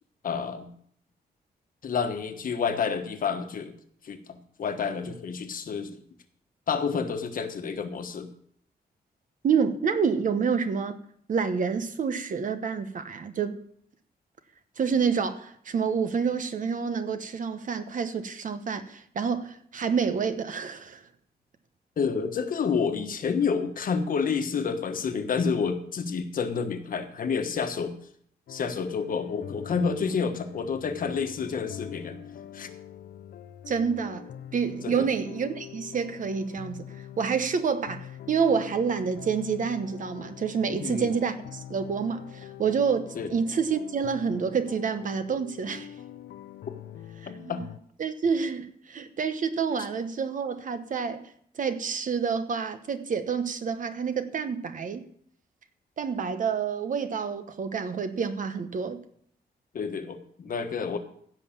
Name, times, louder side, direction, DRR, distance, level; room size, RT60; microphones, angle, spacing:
voice 1, 0.2-0.7 1.8-3.7 4.0-6.0 6.7-8.3 22.0-28.0 28.5-32.2 32.5-32.7 34.8-35.1 40.7-41.1 43.1-43.3 47.3-47.6 59.7-61.0, left 5 dB, 55° left, 1.3 m, -29 dB
voice 2, 9.4-11.0 11.3-13.6 14.8-21.0 33.7-45.9 47.2-47.7 48.0-51.2 51.6-55.0 56.0-59.0, right 6 dB, 50° right, 1.1 m, -28 dB
sound 1, 28.5-47.8, left 10 dB, 75° left, 0.6 m, -44 dB
16.0 x 5.8 x 7.3 m
wide cardioid pair, 150°, 17 cm